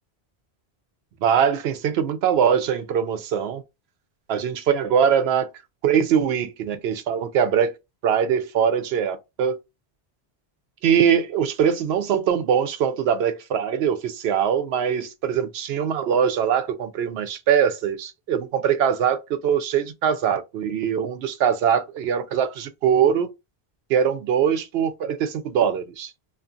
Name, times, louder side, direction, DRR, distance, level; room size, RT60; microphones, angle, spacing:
voice 1, 1.2-3.6 4.3-5.5 5.8-7.7 8.0-9.6 10.8-23.3 23.9-26.1, right 8 dB, 75° right, 0.8 m, -22 dB
2.6 x 2.4 x 2.4 m
omnidirectional pair, 1.1 m